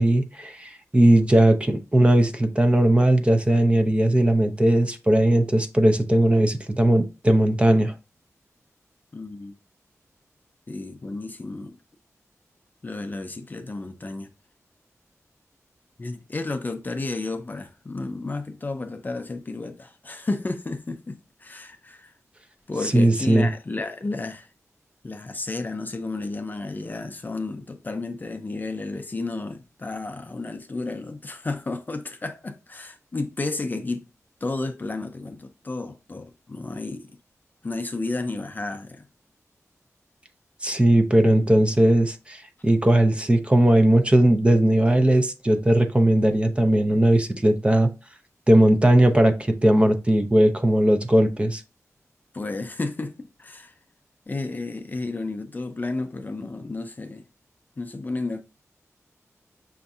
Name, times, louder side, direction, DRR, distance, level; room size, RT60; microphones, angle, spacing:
voice 1, 0.0-7.9 22.9-23.5 40.6-47.9 48.5-51.6, right 1 dB, 20° right, 0.6 m, -18 dB
voice 2, 9.1-9.5 10.7-11.8 12.8-14.3 16.0-22.1 22.7-24.5 25.0-34.1 34.4-37.2 37.6-39.1 52.3-53.7 54.3-57.2 57.8-58.4, left 3 dB, 35° left, 0.5 m, -32 dB
5.6 x 2.6 x 2.4 m
wide cardioid pair, 80°, 6 cm